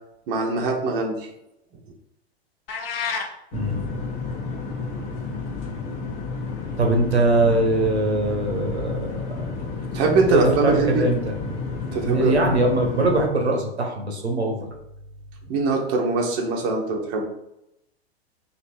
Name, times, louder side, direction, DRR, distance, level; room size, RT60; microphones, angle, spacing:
voice 1, 0.3-1.3 9.9-11.0 11.9-12.3 15.5-17.3, right 3 dB, 40° right, 0 dB, 1.0 m, -22 dB
sound 1, 2.7-3.3, left 5 dB, 60° left, 0.8 m, -28 dB
Inflight Ambience, 3.5-13.3, left 4 dB, 40° left, 1.0 m, -31 dB
voice 2, 3.5-4.0 6.8-9.5 10.3-11.6 12.0-14.7, right 2 dB, 80° right, 2 dB, 1.1 m, -22 dB
3.2 x 2.9 x 4.3 m, 0.82 s
figure-of-eight pair, 100°, 32 cm